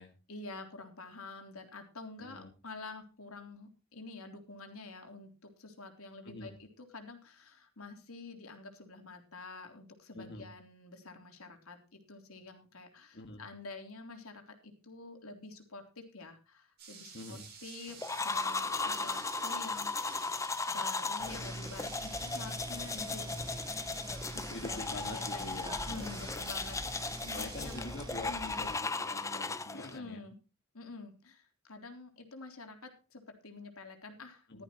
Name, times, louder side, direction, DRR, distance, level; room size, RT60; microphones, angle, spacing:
voice 1, 0.3-19.9 20.7-23.2 24.3-25.5 25.8-28.7 29.7-30.4 30.7-34.6, left 3 dB, 85° left, 5 dB, 3.5 m, -48 dB
voice 2, 2.2-2.5 6.2-6.5 10.1-10.5 13.1-13.4 17.1-17.5 22.7-22.9 24.5-26.3 27.3-30.2 34.5-34.6, left 2 dB, 50° left, 4 dB, 1.9 m, -46 dB
sound 1, 16.8-27.8, right 6 dB, 50° right, 7.9 m, -52 dB
sound 2, 18.0-30.0, left 3 dB, 15° left, 0.8 m, -37 dB
sound 3, 21.2-28.8, right 1 dB, 20° right, 1.4 m, -45 dB
16.5 x 13.0 x 3.0 m, 0.32 s
head